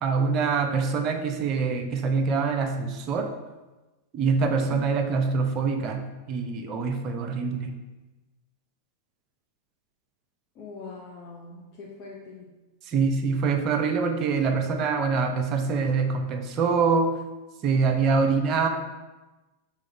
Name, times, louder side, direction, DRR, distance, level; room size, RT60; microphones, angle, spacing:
voice 1, 0.0-3.3 4.1-7.7 12.9-17.1 17.6-18.7, right 5 dB, 35° right, 6 dB, 0.7 m, -25 dB
voice 2, 10.6-12.5 17.7-17.9, left 4 dB, 40° left, -4 dB, 0.9 m, -42 dB
6.3 x 3.5 x 4.6 m, 1.1 s
figure-of-eight pair, 90°, 0 cm